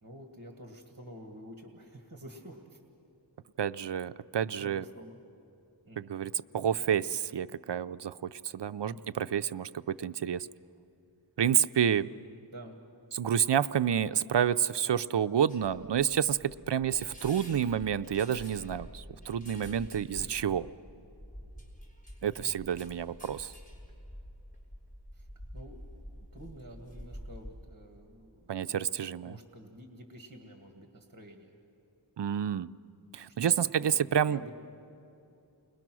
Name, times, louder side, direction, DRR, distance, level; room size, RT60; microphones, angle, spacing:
voice 1, 0.0-2.8 4.6-5.2 5.9-6.1 8.8-9.1 12.0-12.8 20.1-20.6 22.4-22.7 25.1-25.3 25.5-28.5 29.2-31.6 33.4-34.5, equal, 45° right, 3 dB, 1.8 m, -49 dB
voice 2, 3.6-4.8 6.0-10.5 11.4-12.1 13.1-20.7 22.2-23.5 28.5-29.4 32.2-32.7 33.1-34.5, right 8 dB, 65° right, 15 dB, 0.5 m, -29 dB
sound 1, 15.5-27.6, equal, 15° left, 4.9 m, -48 dB
29.5 x 21.0 x 6.1 m, 2.7 s
wide cardioid pair, 60°, 46 cm